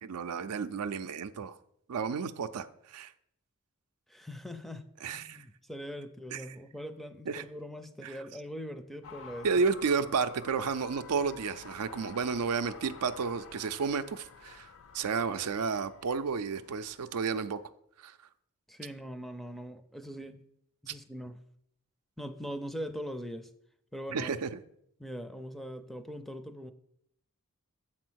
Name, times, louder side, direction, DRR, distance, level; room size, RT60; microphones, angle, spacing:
voice 1, 0.0-1.6 1.9-3.1 5.0-5.4 6.3-6.6 7.3-7.4 8.0-8.2 9.4-14.7 14.9-17.6 18.0-18.2 20.9-21.0 24.1-24.6, right 5 dB, 90° right, 0.5 m, -32 dB
voice 2, 4.1-9.5 18.7-20.4 20.8-21.4 22.2-23.5 23.9-24.3 25.0-26.7, equal, ahead, 0.4 m, -41 dB
sound 1, 9.0-17.7, left 5 dB, 65° left, 0.6 m, -50 dB
7.6 x 4.3 x 6.2 m
head